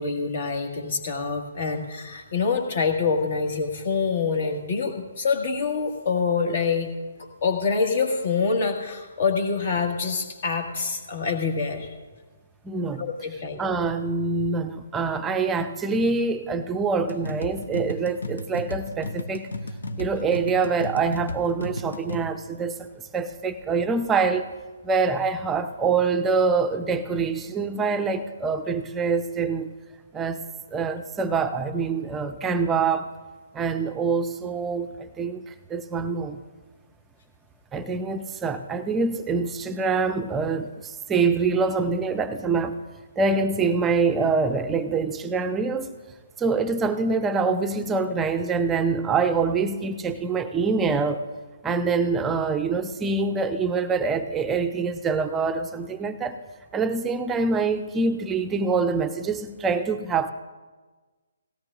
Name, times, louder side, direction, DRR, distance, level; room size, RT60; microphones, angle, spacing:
voice 1, 0.0-6.9 7.4-11.9 13.0-13.6, left 5 dB, 50° left, 4 dB, 1.8 m, -26 dB
voice 2, 12.6-13.1 13.6-19.5 20.0-22.9 23.1-24.5 24.8-29.7 30.1-30.4 30.7-33.1 33.5-36.4 37.7-42.7 43.2-45.9 46.4-51.3 51.6-56.4 56.7-60.3, right 4 dB, 10° right, 8 dB, 0.6 m, -25 dB
sound 1, 17.1-22.2, left 2 dB, 70° left, 0.9 m, -34 dB
18.0 x 17.0 x 2.6 m, 1.3 s
figure-of-eight pair, 135°, 0 cm